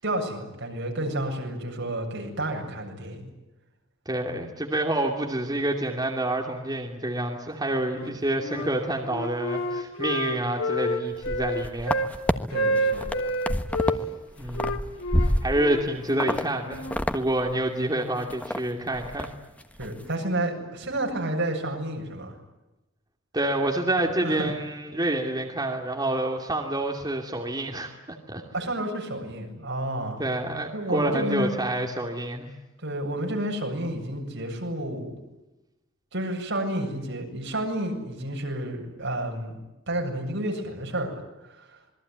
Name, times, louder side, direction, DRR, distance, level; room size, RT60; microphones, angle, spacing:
voice 1, 0.0-3.3 8.0-8.1 12.5-13.1 19.8-22.3 24.2-24.5 28.5-30.2 30.7-31.6 32.8-35.2 36.1-39.6 39.9-41.2 41.5-41.7, right 1 dB, 65° right, 2 dB, 7.7 m, -30 dB
voice 2, 4.1-12.0 14.4-14.8 15.1-16.8 17.1-19.3 23.3-27.9 28.3-28.4 30.2-32.5, right 1 dB, 20° right, 1 dB, 2.7 m, -28 dB
Wind instrument woodwind instrument, 7.9-8.7 9.1-12.1 12.5-14.0 14.5-17.0, equal, 85° left, 3.6 m, -29 dB
sound 1, 11.2-12.3 12.8-14.0 14.3-15.8 16.2-16.4 16.7-17.2 17.5-17.6 18.0-18.6 18.9-19.3 19.6-19.9, equal, 5° left, 1.3 m, -27 dB
27.0 x 22.0 x 9.5 m, 1.0 s
head